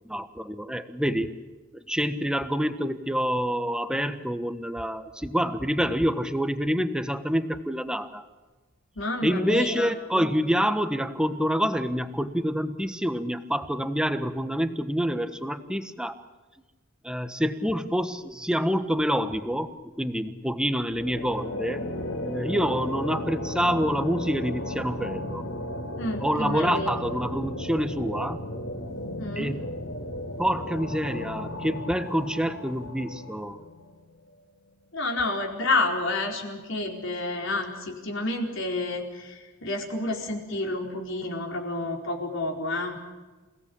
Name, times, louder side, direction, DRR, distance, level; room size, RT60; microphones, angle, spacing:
voice 1, 0.0-1.4 1.7-8.2 9.2-16.2 17.0-21.8 22.2-25.4 26.2-28.4 29.4-29.6 30.4-33.6, equal, 5° right, 10 dB, 1.3 m, -27 dB
voice 2, 9.0-9.9 26.0-27.0 29.2-29.5 34.9-43.1, left 2 dB, 65° left, 2 dB, 4.6 m, -29 dB
sound 1, 20.9-34.0, left 1 dB, 80° left, 3.6 m, -35 dB
28.5 x 17.5 x 8.7 m, 1.3 s
head